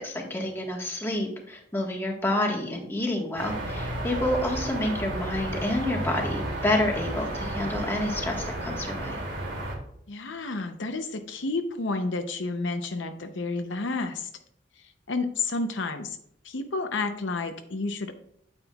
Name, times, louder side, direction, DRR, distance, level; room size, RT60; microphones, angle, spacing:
voice 1, 0.0-9.2, left 1 dB, 15° left, -1 dB, 1.4 m, -29 dB
sound 1, 3.4-9.8, right 1 dB, 70° right, 2.6 m, -32 dB
voice 2, 10.1-14.3 14.8-16.2 16.4-18.1, left 3 dB, 75° left, 7 dB, 0.7 m, -31 dB
8.9 x 8.9 x 2.3 m, 0.69 s
head